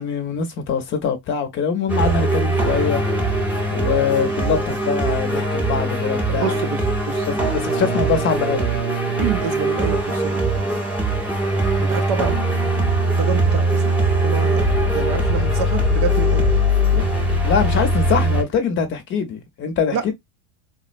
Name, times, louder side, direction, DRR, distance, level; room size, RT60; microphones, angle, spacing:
voice 1, 0.0-3.0 3.7-6.5 7.3-8.7 17.4-20.1, left 6 dB, 30° left, 0.7 m, -23 dB
sound 1, 1.9-18.4, right 1 dB, 5° right, 0.8 m, -21 dB
voice 2, 6.3-7.3 9.2-10.6 11.8-12.4 13.2-13.9 14.2-14.7 14.9-16.5 16.9-17.1 19.9-20.1, right 8 dB, 45° right, 0.5 m, -27 dB
3.8 x 2.1 x 2.4 m
supercardioid pair, 135°, 39 cm